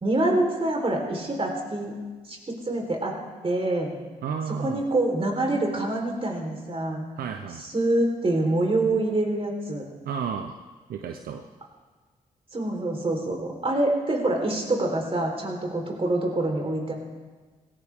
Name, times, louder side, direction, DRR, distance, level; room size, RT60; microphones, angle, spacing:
voice 1, 0.0-1.9 2.3-3.2 3.4-3.9 4.6-7.0 7.6-9.8 12.5-16.9, right 2 dB, 40° right, 1 dB, 4.0 m, -26 dB
voice 2, 4.2-4.8 7.2-7.6 10.0-10.6 10.9-11.5, right 6 dB, 80° right, 5 dB, 0.7 m, -32 dB
17.0 x 16.0 x 3.6 m, 1.4 s
supercardioid pair, 50°, 15 cm